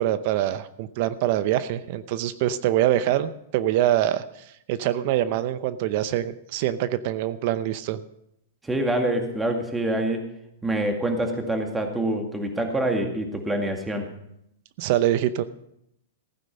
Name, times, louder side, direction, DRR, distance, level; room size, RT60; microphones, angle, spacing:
voice 1, 0.0-4.2 4.7-8.0 14.8-15.4, right 12 dB, 50° right, 14 dB, 0.7 m, -24 dB
voice 2, 8.6-10.3 10.6-14.1, right 1 dB, 10° right, 4 dB, 2.1 m, -26 dB
15.5 x 9.3 x 5.3 m, 0.79 s
hypercardioid pair, 120°, 0 cm